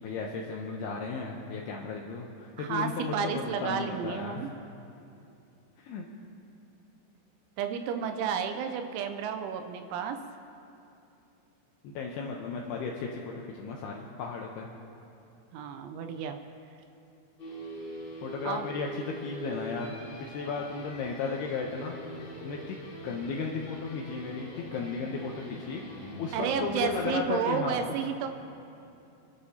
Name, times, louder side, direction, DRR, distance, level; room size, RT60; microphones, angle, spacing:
voice 1, 0.0-4.4 5.8-6.1 11.8-14.7 18.2-21.9 22.4-25.8 26.2-28.0, left 4 dB, 85° left, -1 dB, 2.4 m, -35 dB
voice 2, 2.6-4.5 7.6-10.2 15.5-16.4 18.4-18.7 26.3-28.3, right 7 dB, 80° right, 7 dB, 2.9 m, -31 dB
sound 1, 17.4-27.2, right 1 dB, 30° left, 3.8 m, -43 dB
29.0 x 11.5 x 2.8 m, 2.7 s
omnidirectional pair, 5.6 m